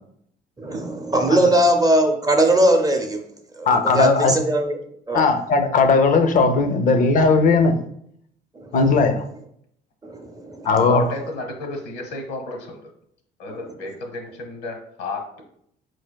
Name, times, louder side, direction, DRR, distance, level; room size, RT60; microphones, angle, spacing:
voice 1, 0.6-3.2 3.6-4.8 5.1-5.3 8.6-8.8 10.0-10.7, right 1 dB, 20° right, 4 dB, 0.6 m, -20 dB
voice 2, 3.7-4.4 5.1-7.8 8.7-9.2 10.6-11.0, left 4 dB, 50° left, 7 dB, 0.5 m, -17 dB
voice 3, 10.9-12.8 13.4-15.4, left 2 dB, 85° left, 3 dB, 1.0 m, -31 dB
4.4 x 3.3 x 2.2 m, 0.70 s
cardioid pair, 110°, 17 cm